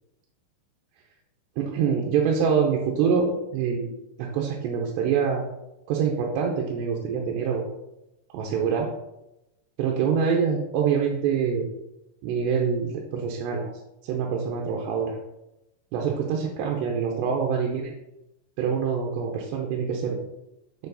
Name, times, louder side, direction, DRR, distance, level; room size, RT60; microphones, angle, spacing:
voice 1, 1.6-3.9 4.2-5.4 5.9-7.6 8.3-8.9 9.8-11.7 12.2-13.7 14.0-15.2 15.9-17.9 18.6-20.2, right 6 dB, 80° right, -1 dB, 3.0 m, -25 dB
7.7 x 6.9 x 4.1 m, 0.91 s
omnidirectional pair, 5.0 m